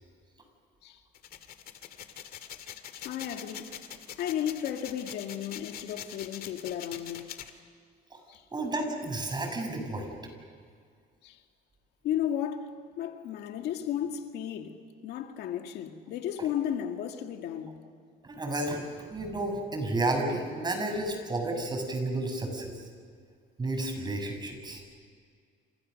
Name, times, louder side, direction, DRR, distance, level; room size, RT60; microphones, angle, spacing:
sound 1, 1.1-7.5, left 9 dB, 60° left, 2.2 m, -43 dB
voice 1, 3.0-3.8 4.2-7.3 8.3-8.4 11.2-11.4 12.0-12.7 13.0-14.8 15.0-17.8, left 10 dB, 80° left, 2.1 m, -34 dB
voice 2, 8.5-10.1 18.2-18.8 19.1-22.8 23.6-24.8, right 2 dB, 25° right, 6.7 m, -31 dB
29.0 x 27.5 x 6.6 m
cardioid pair, 110°, 17 cm